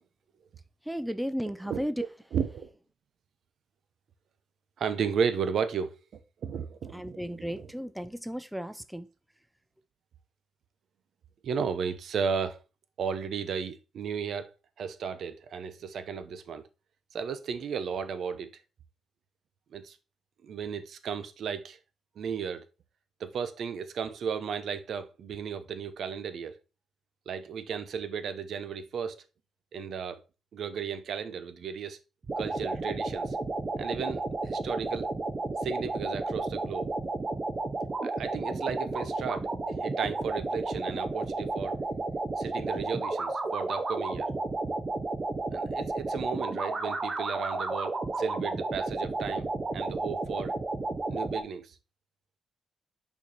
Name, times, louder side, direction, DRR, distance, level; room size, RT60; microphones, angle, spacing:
voice 1, 0.9-2.0 6.9-9.1, equal, ahead, 0.4 m, -34 dB
voice 2, 2.3-2.7 4.8-5.9 6.4-7.7 11.4-12.6 13.0-14.5 14.8-16.6 17.1-18.5 19.7-20.0 20.4-21.8 22.2-22.6 23.2-26.6 27.3-29.2 29.7-30.2 30.5-32.0 32.4-33.4 33.8-35.1 35.6-36.9 38.0-41.7 42.4-44.3 45.5-49.5 49.7-50.5 51.1-51.7, right 6 dB, 65° right, 0.8 m, -34 dB
sound 1, 32.2-51.4, right 3 dB, 30° right, 0.9 m, -32 dB
5.7 x 4.4 x 4.1 m
cardioid pair, 125°, 0 cm